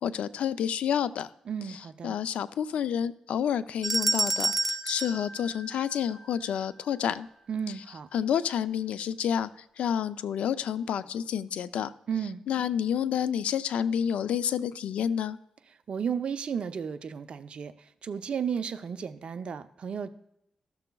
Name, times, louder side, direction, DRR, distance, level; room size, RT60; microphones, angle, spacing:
voice 1, 0.0-1.3 1.7-7.3 8.1-9.5 9.8-11.9 12.5-15.4, left 8 dB, 90° left, 15 dB, 0.4 m, -29 dB
voice 2, 1.5-2.2 7.5-8.1 12.1-12.4 15.9-20.1, right 7 dB, 60° right, 11 dB, 0.5 m, -33 dB
sound 1, 3.8-6.2, right 2 dB, 5° right, 0.7 m, -29 dB
13.5 x 6.8 x 2.3 m, 0.80 s
cardioid pair, 85°, 2 cm